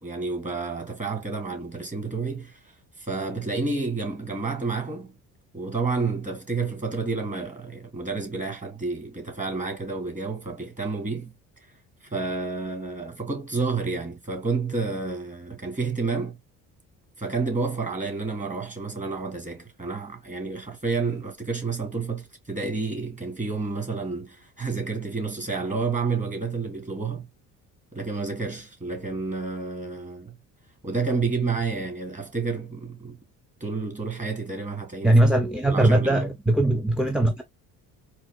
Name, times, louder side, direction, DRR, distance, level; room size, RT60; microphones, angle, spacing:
voice 1, 0.0-5.2 5.5-11.3 12.0-16.4 17.2-27.3 27.9-30.4 30.8-33.2 33.6-35.2 35.7-36.3, right 4 dB, 20° right, 2.0 m, -30 dB
voice 2, 35.0-37.4, right 1 dB, 5° right, 0.5 m, -20 dB
4.1 x 2.9 x 2.3 m
cardioid pair, 100°, 33 cm